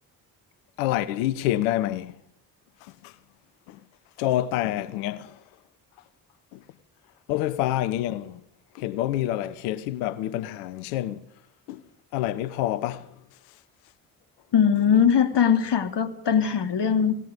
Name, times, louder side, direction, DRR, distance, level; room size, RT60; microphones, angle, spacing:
voice 1, 0.8-2.2 2.9-3.1 3.7-3.8 4.2-5.4 6.5-6.6 7.3-8.4 8.7-11.2 11.7-11.8 12.1-13.1, left 14 dB, 85° left, 1.2 m, -27 dB
voice 2, 14.5-17.1, left 7 dB, 55° left, 3.1 m, -21 dB
26.5 x 18.5 x 5.2 m
hypercardioid pair, 45°, 49 cm